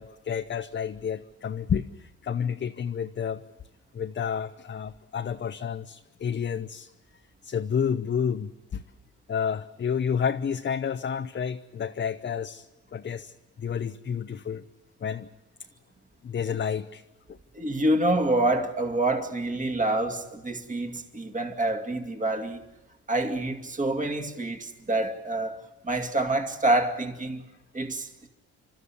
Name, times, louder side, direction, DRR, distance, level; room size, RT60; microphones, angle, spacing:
voice 1, 0.0-3.4 3.9-6.9 7.4-8.8 9.3-12.7 12.9-14.6 15.0-15.3 16.2-17.0 17.3-17.4, left 7 dB, 35° left, 0.8 m, -30 dB
voice 2, 17.5-22.6 23.1-27.4 27.7-28.3, right 1 dB, 25° right, 2.4 m, -27 dB
29.0 x 13.0 x 9.8 m
cardioid pair, 90°, 30 cm